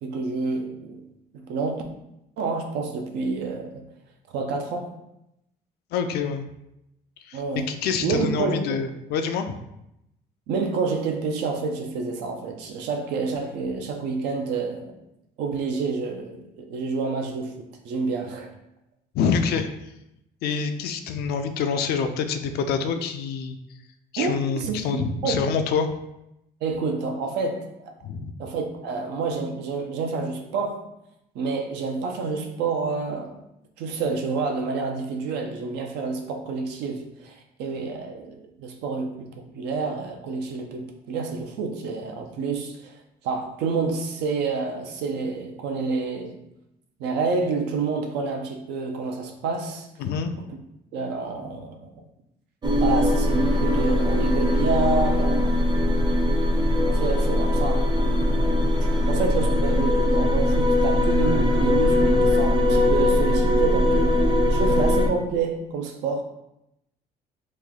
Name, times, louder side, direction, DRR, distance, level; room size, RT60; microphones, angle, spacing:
voice 1, 0.0-1.0 1.3-1.8 2.4-3.8 4.3-4.9 7.3-7.7 8.0-8.8 10.5-14.9 15.4-18.5 24.2-25.4 26.6-27.9 28.4-30.8 31.3-33.3 33.8-39.3 39.5-43.0 43.2-46.4 47.0-49.9 50.9-51.9 52.8-55.6 56.8-58.0 58.8-66.2, right 4 dB, 85° right, 3 dB, 0.6 m, -28 dB
voice 2, 5.9-6.4 7.3-9.6 19.1-19.7 20.4-23.6 24.1-25.9 28.0-28.3 50.0-50.3 55.8-56.1, left 6 dB, 70° left, 7 dB, 0.4 m, -26 dB
sound 1, 52.6-65.1, left 1 dB, 25° right, 0.5 m, -21 dB
3.1 x 2.3 x 3.7 m, 0.84 s
cardioid pair, 110°, 17 cm